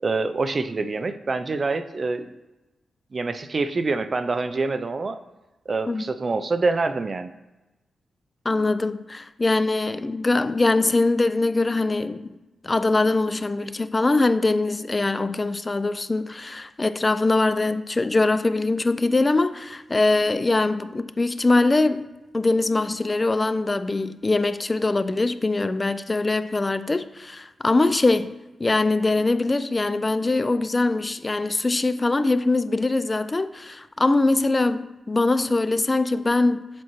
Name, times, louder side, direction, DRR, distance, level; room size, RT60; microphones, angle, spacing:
voice 1, 0.0-2.3 3.1-5.2 5.7-7.3, right 3 dB, 45° right, 0.4 m, -26 dB
voice 2, 8.5-12.4 12.6-22.1 22.3-28.3 28.6-36.7, left 2 dB, 30° left, 0.3 m, -22 dB
7.2 x 4.3 x 3.1 m
cardioid pair, 75°, 0 cm